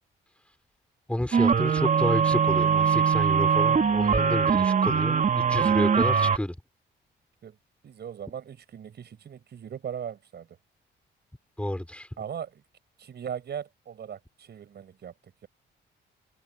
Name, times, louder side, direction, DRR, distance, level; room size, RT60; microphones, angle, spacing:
voice 1, 1.1-6.6 11.6-12.1, left 1 dB, 5° left, 5.5 m, -30 dB
sound 1, 1.3-6.4, right 6 dB, 40° right, 2.3 m, -22 dB
voice 2, 7.8-10.6 12.2-12.6 13.0-15.1, right 8 dB, 55° right, 6.3 m, -39 dB
cardioid pair, 90°, 20 cm